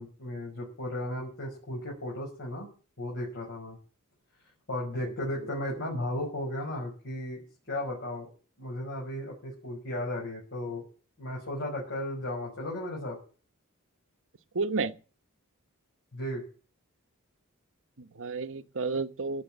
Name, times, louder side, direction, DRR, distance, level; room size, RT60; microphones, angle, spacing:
voice 1, 0.0-2.7 3.0-3.8 4.7-7.4 7.7-8.3 8.6-10.8 11.2-13.2 16.1-16.4, left 1 dB, 55° left, 6.1 m, -35 dB
voice 2, 14.5-14.9 18.0-19.4, right 4 dB, 60° right, 1.0 m, -31 dB
18.0 x 6.6 x 9.1 m
head